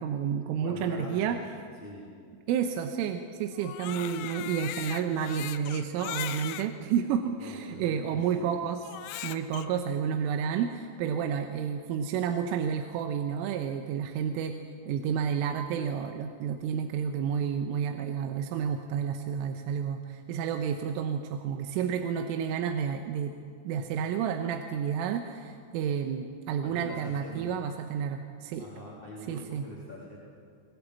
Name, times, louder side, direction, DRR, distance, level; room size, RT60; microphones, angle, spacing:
voice 1, 0.0-1.4 2.5-8.8 9.2-14.6 14.9-23.4 23.7-28.7 29.3-29.7, right 7 dB, 85° right, 5 dB, 3.6 m, -30 dB
voice 2, 0.6-1.4 1.8-2.1 7.4-8.5 26.6-27.6 28.6-30.2, equal, 15° left, -5 dB, 2.9 m, -43 dB
Crying sobbing, 3.6-6.7 7.4-7.5 8.8-9.7, left 13 dB, 85° left, 3.3 m, -38 dB
22.0 x 21.0 x 8.5 m, 2.2 s
omnidirectional pair, 5.7 m